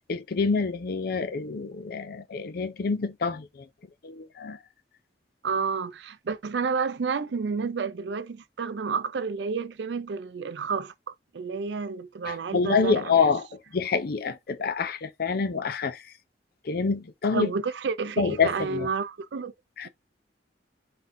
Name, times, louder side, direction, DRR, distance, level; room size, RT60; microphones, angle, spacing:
voice 1, 0.0-3.7 4.0-4.6 12.3-16.1 16.6-17.5 18.2-18.9 19.8-19.9, left 5 dB, 60° left, 0.5 m, -27 dB
voice 2, 5.4-13.3 17.3-19.5, right 5 dB, 70° right, 0.4 m, -30 dB
4.2 x 3.6 x 2.6 m
head